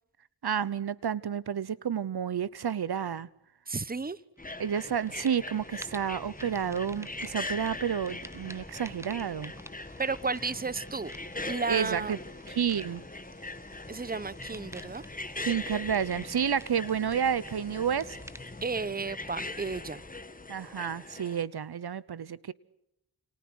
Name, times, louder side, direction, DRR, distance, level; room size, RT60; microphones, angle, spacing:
voice 1, 0.4-3.3 4.6-9.5 11.7-12.2 12.5-13.0 15.4-18.2 20.5-22.5, right 8 dB, 70° right, 0.9 m, -30 dB
voice 2, 3.7-4.2 10.0-11.1 11.5-12.2 13.9-15.0 18.6-20.0, right 4 dB, 20° right, 1.0 m, -33 dB
sound 1, 4.4-21.4, left 2 dB, 20° left, 1.6 m, -41 dB
sound 2, 4.4-4.8 5.1-20.1, right 1 dB, 5° right, 1.3 m, -51 dB
29.5 x 28.5 x 6.4 m
wide cardioid pair, 70°, 40 cm